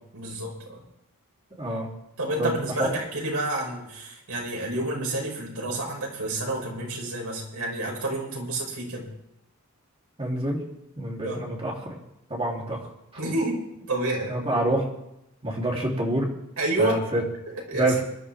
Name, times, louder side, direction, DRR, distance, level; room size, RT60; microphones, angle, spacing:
voice 1, 0.1-0.8 2.2-9.1 11.2-11.4 13.2-13.6 13.9-14.4 16.6-17.0 17.5-18.0, right 2 dB, 80° right, -2 dB, 5.9 m, -29 dB
voice 2, 10.2-10.6 11.0-12.0 12.3-12.8 14.3-14.9 15.4-16.3 16.8-17.2 17.7-18.0, right 1 dB, 25° right, -2 dB, 3.6 m, -26 dB
24.5 x 12.0 x 3.7 m, 0.84 s
head